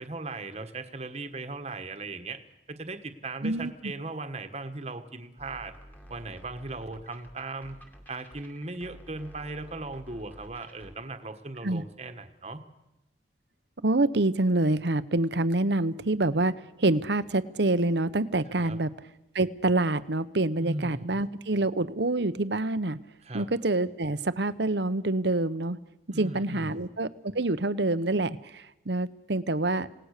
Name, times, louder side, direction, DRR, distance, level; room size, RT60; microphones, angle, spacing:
voice 1, 0.0-2.4 2.7-5.7 6.1-7.8 8.1-12.6 18.5-18.8 20.6-21.2 23.2-23.5 26.1-26.8, right 3 dB, 35° right, 8 dB, 1.5 m, -38 dB
voice 2, 3.4-3.9 11.6-11.8 13.8-18.9 19.3-23.0 23.3-25.8 26.1-29.9, right 2 dB, 65° right, 14 dB, 1.0 m, -26 dB
sound 1, 5.4-11.0, equal, 10° left, 2.4 m, -50 dB
27.5 x 18.0 x 6.7 m, 0.94 s
head